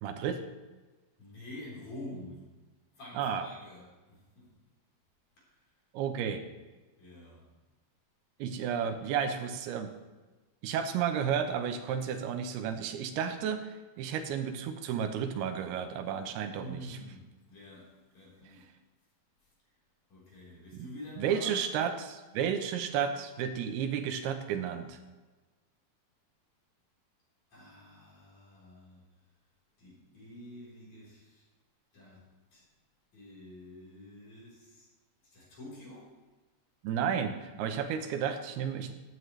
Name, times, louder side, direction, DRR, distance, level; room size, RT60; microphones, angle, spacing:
voice 1, 0.0-0.4 3.2-3.5 5.9-6.4 8.4-9.9 10.6-17.0 20.7-20.9 21.2-25.0 36.8-38.9, right 8 dB, 85° right, 7 dB, 2.9 m, -32 dB
voice 2, 1.2-2.5 3.0-4.5 5.4-5.7 7.0-7.5 16.5-18.7 20.1-21.6 27.5-29.0 29.8-31.4 31.9-32.2 32.5-32.6 33.1-34.9 35.2-36.1, left 1 dB, 45° left, -6 dB, 5.2 m, -48 dB
14.0 x 9.6 x 3.2 m, 1.2 s
omnidirectional pair, 4.5 m